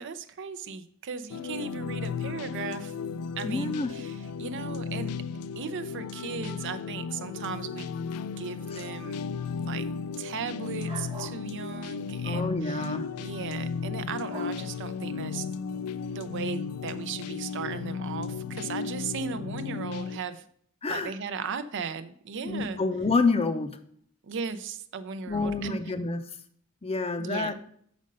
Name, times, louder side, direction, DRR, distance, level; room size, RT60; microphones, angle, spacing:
voice 1, 0.0-2.9 3.4-5.1 5.6-7.9 8.4-9.2 9.6-9.9 10.2-15.5 16.1-20.4 20.9-22.8 24.2-26.0 27.2-27.5, right 5 dB, 55° right, 11 dB, 0.5 m, -37 dB
sound 1, 1.3-20.2, left 5 dB, 85° left, 0.3 m, -35 dB
voice 2, 3.4-3.9 8.7-8.8 12.2-13.1 20.8-21.1 22.4-23.7 25.3-26.2 26.8-27.6, left 3 dB, 25° left, 10 dB, 0.6 m, -28 dB
sound 2, 10.8-11.4 12.3-12.6 14.3-14.6, right 3 dB, 25° right, 1.0 m, -43 dB
6.5 x 5.1 x 5.3 m, 0.63 s
head